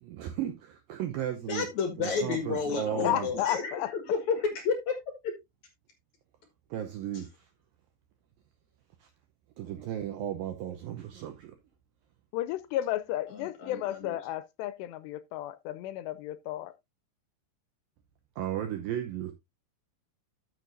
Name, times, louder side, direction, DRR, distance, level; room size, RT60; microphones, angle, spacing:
voice 1, 0.0-1.7 2.0-3.3 6.7-7.5 9.0-9.1 9.6-11.6 18.4-19.3, right 11 dB, 85° right, 2.1 m, -35 dB
voice 2, 1.5-5.0 5.2-5.3 13.3-14.2, left 5 dB, 60° left, 2.1 m, -31 dB
voice 3, 3.0-3.9 12.3-16.7, left 13 dB, 80° left, 2.7 m, -33 dB
13.0 x 6.5 x 2.6 m
omnidirectional pair, 5.0 m